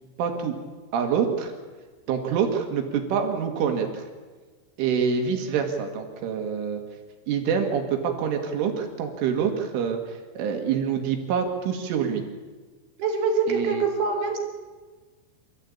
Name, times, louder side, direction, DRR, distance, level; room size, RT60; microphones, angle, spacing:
voice 1, 0.2-0.5 0.9-1.5 2.1-4.0 4.8-6.8 7.3-12.2 13.5-13.8, right 7 dB, 75° right, 4 dB, 4.5 m, -26 dB
voice 2, 13.0-14.4, right 4 dB, 55° right, 2 dB, 4.0 m, -24 dB
28.0 x 14.0 x 8.6 m, 1.4 s
omnidirectional pair, 5.8 m